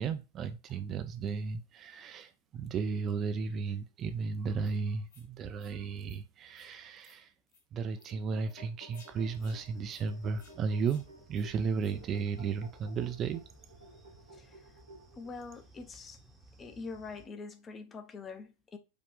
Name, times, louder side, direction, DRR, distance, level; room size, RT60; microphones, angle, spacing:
voice 1, 0.0-7.3 7.7-13.4, right 5 dB, 30° right, 0.3 m, -34 dB
sound 1, 4.6-4.7 5.1-5.3 5.6-5.8 6.0-6.2 6.5-6.7 7.0-7.2 7.5-7.6 8.0-8.1 8.4-8.6 8.9-9.1 9.4-9.6 9.9-10.0 10.4-10.6 10.8-11.0 11.3-11.5 11.8-12.0, left 4 dB, 60° left, 1.1 m, -61 dB
sound 2, 7.9-15.5, right 1 dB, 75° left, 2.1 m, -54 dB
sound 3, 9.1-17.3, right 1 dB, 10° right, 0.8 m, -59 dB
voice 2, 14.3-14.6 15.1-16.2 16.6-18.8, left 4 dB, 20° left, 0.6 m, -44 dB
4.9 x 2.4 x 3.5 m
figure-of-eight pair, 90°, 0 cm